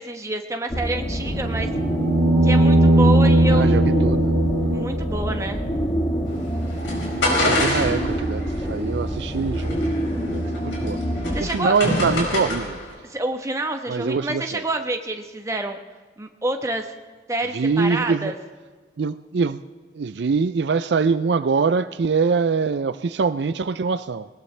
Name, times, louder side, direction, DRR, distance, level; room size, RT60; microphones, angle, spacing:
voice 1, 0.0-1.7 2.4-3.8 4.7-5.6 11.3-11.8 13.1-15.8 16.2-16.9 17.3-18.3, right 2 dB, 15° right, 4 dB, 1.1 m, -28 dB
sound 1, 0.7-11.4, equal, 20° left, 1.7 m, -26 dB
sound 2, 1.2-5.3 7.7-7.8, right 1 dB, 90° right, 0.9 m, -18 dB
voice 2, 3.5-4.3 7.4-11.0 11.4-12.8 13.9-14.6 17.5-18.3 19.0-19.6 19.9-24.3, right 5 dB, 70° right, 13 dB, 0.4 m, -24 dB
sound 3, 6.3-12.9, left 1 dB, 90° left, 4.9 m, -27 dB
19.5 x 19.5 x 3.3 m, 1.4 s
head